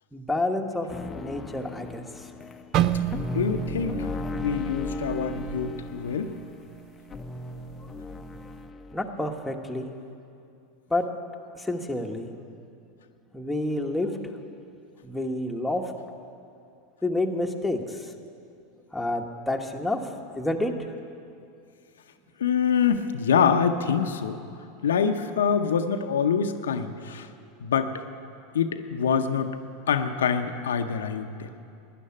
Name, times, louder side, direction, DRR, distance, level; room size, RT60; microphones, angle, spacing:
voice 1, 0.1-0.9 1.2-2.3 8.9-9.9 10.9-11.1 11.5-12.3 13.3-14.2 15.0-15.9 17.0-18.1 18.9-20.0 20.4-20.7, left 2 dB, 5° left, 1 dB, 1.2 m, -29 dB
sound 1, 0.9-9.1, left 2 dB, 20° left, 0.7 m, -36 dB
sound 2, 2.7-6.8 7.1-7.4 8.0-8.4, right 11 dB, 50° right, 0.4 m, -31 dB
voice 2, 3.3-6.4 22.4-24.4 24.8-27.3 27.6-27.9 28.5-29.6 29.9-31.5, left 7 dB, 85° left, 7 dB, 0.7 m, -25 dB
12.5 x 9.9 x 8.6 m, 2.5 s
hypercardioid pair, 95°, 0 cm